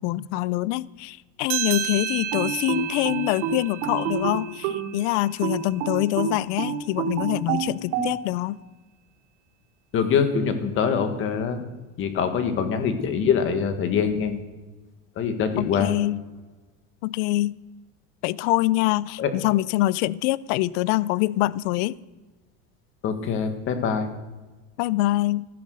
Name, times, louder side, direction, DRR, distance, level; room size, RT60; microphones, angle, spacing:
voice 1, 0.0-8.6 15.6-16.2 17.0-17.6 18.2-21.9 24.8-25.5, left 17 dB, 65° left, 0.6 m, -25 dB
sound 1, 1.5-6.4, right 12 dB, 45° right, 1.7 m, -33 dB
sound 2, 2.3-4.9 5.4-8.1, right 8 dB, 90° right, 3.8 m, -27 dB
voice 2, 9.9-11.6 12.0-14.4 15.2-15.9 19.2-19.3 23.0-24.1, left 6 dB, 30° left, 1.7 m, -24 dB
15.0 x 13.0 x 6.4 m
cardioid pair, 175°, 38 cm